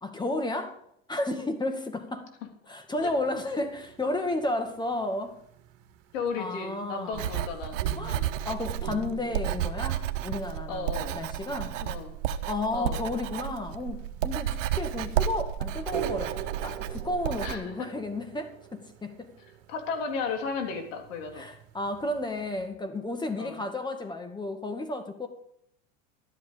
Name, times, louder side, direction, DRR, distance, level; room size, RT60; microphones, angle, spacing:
voice 1, 0.0-0.8 1.1-2.3 2.7-5.4 6.4-7.3 8.0-11.8 12.5-19.4 21.4-25.3, left 2 dB, 10° left, 2.0 m, -32 dB
sound 1, 3.0-22.7, right 11 dB, 65° right, 2.1 m, -46 dB
voice 2, 6.1-7.7 8.1-8.3 10.7-11.2 11.8-12.1 12.7-13.0 17.4-17.9 19.7-21.4 23.4-23.7, left 5 dB, 80° left, 3.6 m, -34 dB
Writing, 7.1-17.6, right 10 dB, 80° right, 1.2 m, -31 dB
12.5 x 10.5 x 5.3 m
supercardioid pair, 115°, 38 cm